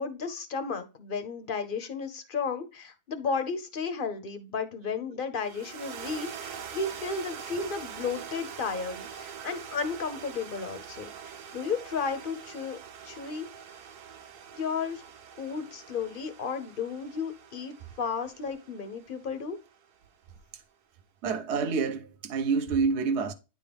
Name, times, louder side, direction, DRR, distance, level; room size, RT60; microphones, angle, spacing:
voice 1, 0.0-12.8 13.0-13.5 14.5-15.0 15.4-19.6, left 5 dB, 50° left, 0.7 m, -33 dB
voice 2, 5.4-5.7 9.4-9.6 20.5-20.6 21.2-23.3, right 5 dB, 60° right, 0.8 m, -28 dB
sound 1, 5.4-19.9, right 7 dB, 80° right, 1.3 m, -44 dB
9.7 x 3.7 x 3.3 m
omnidirectional pair, 1.7 m